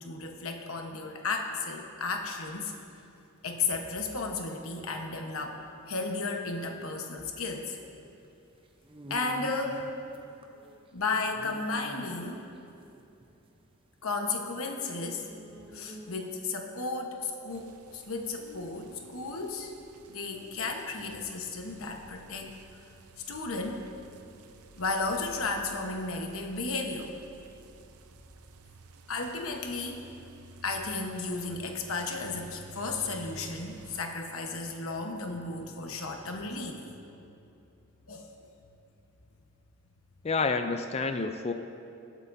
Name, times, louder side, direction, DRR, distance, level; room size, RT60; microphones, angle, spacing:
voice 1, 0.0-2.7 3.4-7.8 9.1-9.9 10.9-12.5 14.0-19.7 20.1-22.5 23.3-23.9 24.8-27.1 29.1-30.0 30.6-36.8 38.1-38.3, left 3 dB, 70° left, 3 dB, 1.1 m, -34 dB
sound 1, 2.5-16.7, right 1 dB, 25° right, 0.6 m, -51 dB
sound 2, 17.5-34.0, right 3 dB, 80° right, 0.6 m, -53 dB
voice 2, 40.2-41.5, left 4 dB, 30° left, 8 dB, 0.4 m, -29 dB
21.0 x 8.1 x 2.7 m, 2.7 s
head